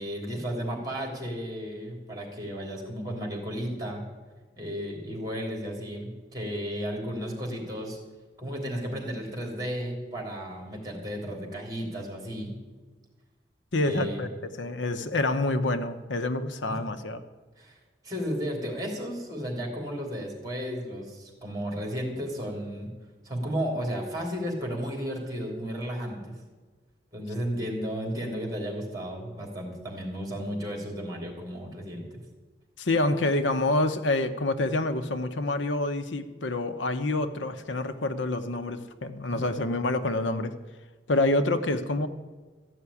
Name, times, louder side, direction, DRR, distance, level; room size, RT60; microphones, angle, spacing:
voice 1, 0.0-4.1 4.6-8.0 8.4-12.6 13.8-14.2 16.7-16.8 17.6-17.8 18.0-22.9 23.2-26.4 27.1-32.0, equal, 20° right, 1 dB, 3.1 m, -33 dB
voice 2, 13.7-14.3 14.6-17.2 32.8-40.5 41.1-42.1, left 2 dB, 85° left, 10 dB, 0.8 m, -27 dB
14.0 x 5.8 x 9.8 m, 1.3 s
head